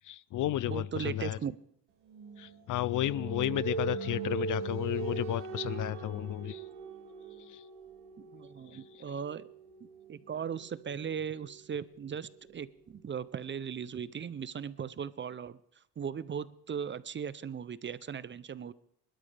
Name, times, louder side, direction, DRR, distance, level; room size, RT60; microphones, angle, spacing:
voice 1, 0.0-1.4 2.4-6.6 7.4-7.6 8.7-9.0, left 13 dB, 55° left, 21 dB, 0.5 m, -33 dB
voice 2, 0.7-1.6 8.2-9.5 10.1-15.6 16.0-18.7, right 7 dB, 30° right, 17 dB, 0.5 m, -38 dB
sound 1, 2.1-13.6, right 6 dB, 90° right, 2.0 m, -42 dB
25.5 x 12.5 x 3.4 m, 0.70 s
cardioid pair, 105°, 38 cm